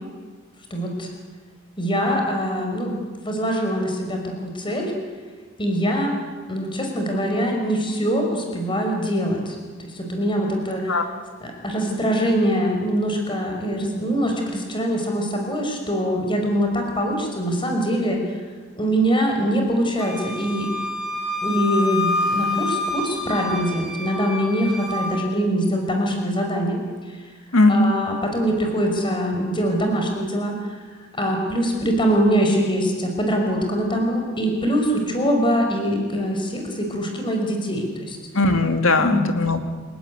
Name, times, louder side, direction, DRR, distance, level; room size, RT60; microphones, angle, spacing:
voice 1, 0.7-1.1 1.8-4.9 5.6-6.1 6.5-9.6 9.8-11.0 11.4-18.4 18.8-20.7 21.4-26.8 27.7-30.7 31.2-38.2 39.0-39.2, equal, 25° left, 2 dB, 5.4 m, -23 dB
Wind instrument woodwind instrument, 20.0-25.2, left 2 dB, ahead, 5.6 m, -27 dB
voice 2, 27.5-28.0 38.3-39.7, left 2 dB, 75° left, 6 dB, 2.8 m, -18 dB
29.0 x 17.5 x 9.7 m, 1.4 s
head